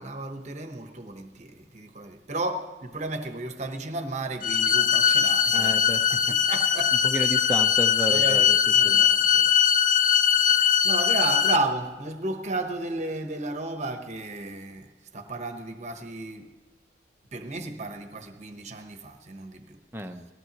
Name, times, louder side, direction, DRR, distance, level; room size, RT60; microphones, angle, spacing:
voice 1, 0.0-7.1 8.1-9.6 10.4-10.5 10.8-16.5 17.3-19.8, right 2 dB, 40° right, 1.0 m, -33 dB
sound 1, 4.4-11.6, left 8 dB, 45° left, 0.5 m, -21 dB
voice 2, 5.5-6.3 7.0-8.6 8.8-9.0 10.6-10.7 19.9-20.3, right 1 dB, 10° right, 0.7 m, -32 dB
19.0 x 15.5 x 3.0 m
head